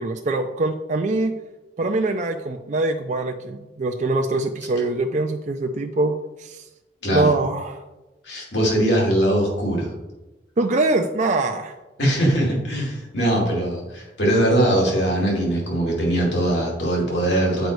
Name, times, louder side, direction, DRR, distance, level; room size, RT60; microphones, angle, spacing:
voice 1, 0.0-1.3 1.8-6.7 7.1-7.8 10.6-11.7, right 2 dB, 40° right, 4 dB, 0.4 m, -23 dB
voice 2, 8.2-9.9 12.0-17.7, right 1 dB, 80° left, -2 dB, 2.6 m, -21 dB
7.9 x 5.2 x 4.7 m, 1.1 s
head